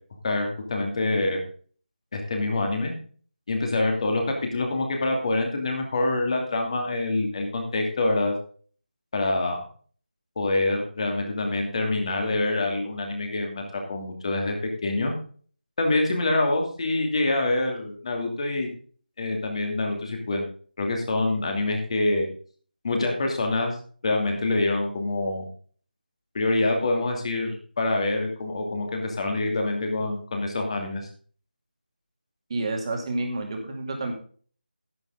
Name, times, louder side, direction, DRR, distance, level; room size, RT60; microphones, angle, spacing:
voice 1, 0.2-1.4 2.1-2.9 3.5-4.2 4.5-8.3 9.1-9.6 10.4-14.5 14.8-15.1 15.8-18.7 19.2-20.4 20.8-22.3 22.8-23.8 24.0-25.5 26.3-31.1, left 2 dB, 35° left, 3 dB, 2.6 m, -26 dB
voice 2, 32.5-34.1, right 2 dB, 30° right, 3 dB, 2.2 m, -29 dB
11.0 x 9.3 x 3.8 m, 0.43 s
figure-of-eight pair, 165°, 5 cm